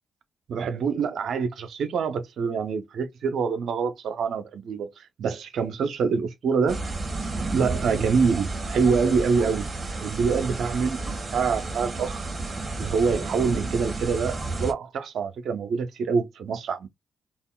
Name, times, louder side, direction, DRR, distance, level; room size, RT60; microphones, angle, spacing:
voice 1, 0.5-6.8 7.5-9.7 10.0-12.2 12.8-16.9, right 5 dB, 70° right, 0.6 m, -26 dB
sound 1, 6.7-14.7, right 3 dB, 40° right, 1.6 m, -31 dB
3.5 x 2.3 x 2.2 m
supercardioid pair, 50°, 0 cm